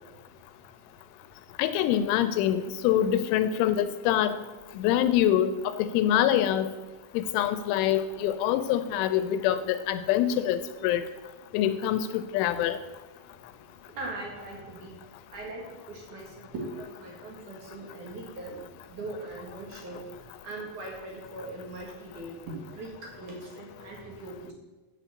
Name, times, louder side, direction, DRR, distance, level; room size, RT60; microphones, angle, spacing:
voice 1, 1.6-4.4 4.8-5.5 5.8-6.7 7.1-11.1 11.5-12.8, left 11 dB, 85° left, 11 dB, 2.9 m, -25 dB
voice 2, 13.9-15.0 15.3-18.6 18.9-24.5, right 2 dB, 60° right, -1 dB, 2.1 m, -40 dB
7.6 x 6.8 x 7.3 m, 1.2 s
omnidirectional pair, 5.6 m